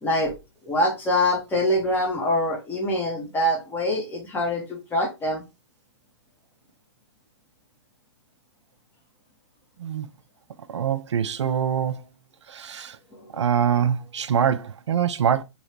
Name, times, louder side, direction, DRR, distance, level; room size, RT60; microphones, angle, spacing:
voice 1, 0.0-0.3 0.6-5.4 13.1-13.3, left 1 dB, 15° left, 1.1 m, -24 dB
voice 2, 10.7-12.0 12.5-13.0 13.3-15.4, right 8 dB, 75° right, 0.4 m, -24 dB
2.9 x 2.7 x 3.1 m
hypercardioid pair, 125°, 15 cm